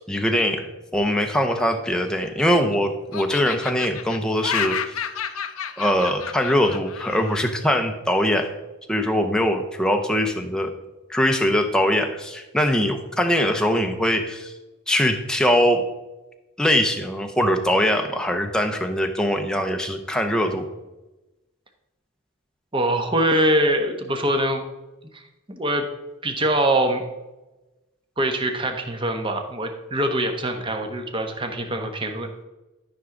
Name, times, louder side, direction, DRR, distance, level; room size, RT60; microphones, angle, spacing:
voice 1, 0.0-4.8 5.8-8.5 8.9-10.7 11.1-14.5 14.9-15.8 16.6-20.6, equal, 5° left, 4 dB, 0.7 m, -22 dB
Laughter, 1.9-2.7 3.1-7.5, left 8 dB, 85° left, 0.7 m, -31 dB
voice 2, 22.7-24.6 25.1-25.9 26.2-27.0 28.2-32.3, right 1 dB, 25° right, 5 dB, 1.1 m, -23 dB
13.0 x 5.9 x 3.8 m, 1.0 s
head